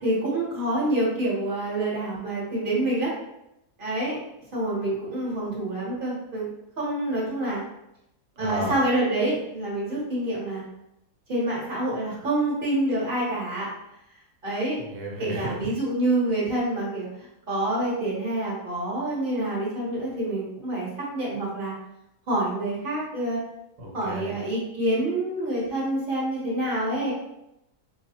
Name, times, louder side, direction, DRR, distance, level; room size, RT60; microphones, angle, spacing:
voice 1, 0.0-3.1 3.8-4.2 4.5-6.5 6.8-7.6 8.4-10.6 11.3-13.7 14.4-14.8 15.2-20.9 21.1-21.7 22.3-23.4 23.9-27.1, right 1 dB, 35° right, -6 dB, 1.3 m, -27 dB
voice 2, 8.4-8.7 14.8-15.6 23.8-24.3, equal, 80° right, -2 dB, 1.4 m, -32 dB
4.1 x 2.4 x 2.8 m, 0.84 s
omnidirectional pair, 1.7 m